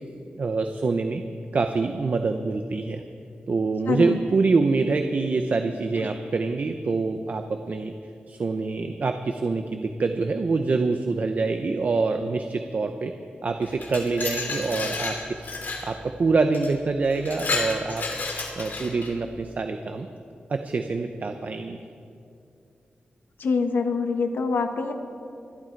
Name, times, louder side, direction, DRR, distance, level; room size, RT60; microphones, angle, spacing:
voice 1, 0.4-1.2 1.5-3.0 3.5-7.9 8.3-13.1 13.4-15.4 15.8-18.1 18.6-20.1 20.5-21.8, right 4 dB, 50° right, 6 dB, 0.7 m, -25 dB
voice 2, 3.9-4.2 23.4-24.9, left 4 dB, 85° left, 6 dB, 1.2 m, -24 dB
Glass, 13.6-15.9 16.5-16.7 17.1-19.1, left 3 dB, 65° left, 2.6 m, -31 dB
25.0 x 11.5 x 4.6 m, 2.5 s
wide cardioid pair, 140°, 4 cm